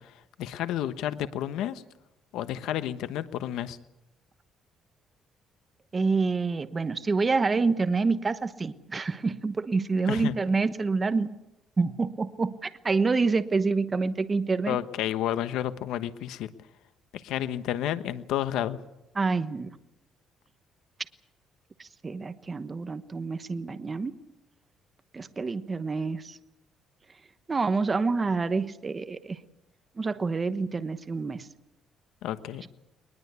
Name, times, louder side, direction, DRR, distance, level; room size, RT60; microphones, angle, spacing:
voice 1, 0.0-1.8 2.3-3.8 10.1-10.3 14.7-16.5 17.1-18.8 32.2-32.7, left 11 dB, 85° left, 11 dB, 1.1 m, -31 dB
voice 2, 5.9-11.3 11.8-14.8 19.1-19.8 21.8-24.2 25.1-26.4 27.5-29.4 30.0-31.5, right 4 dB, 25° right, 11 dB, 1.1 m, -27 dB
21.5 x 20.5 x 8.2 m, 0.89 s
cardioid pair, 120°, 0 cm